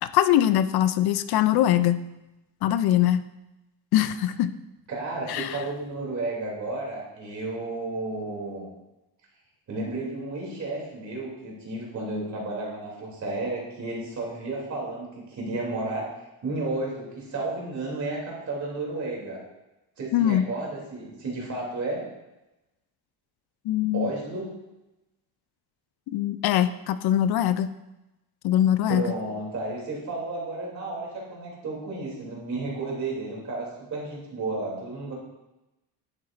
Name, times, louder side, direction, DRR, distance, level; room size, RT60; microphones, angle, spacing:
voice 1, 0.0-2.0 2.6-3.2 3.9-4.5 5.3-5.6 20.1-20.4 23.7-24.1 26.1-27.7 28.4-29.0, left 12 dB, 65° left, 13 dB, 0.5 m, -22 dB
voice 2, 4.9-8.7 9.7-16.1 16.4-19.4 20.0-22.0 23.9-24.5 28.9-35.1, right 2 dB, 45° right, -3 dB, 2.9 m, -32 dB
10.5 x 8.5 x 2.5 m, 0.97 s
cardioid pair, 170°, 41 cm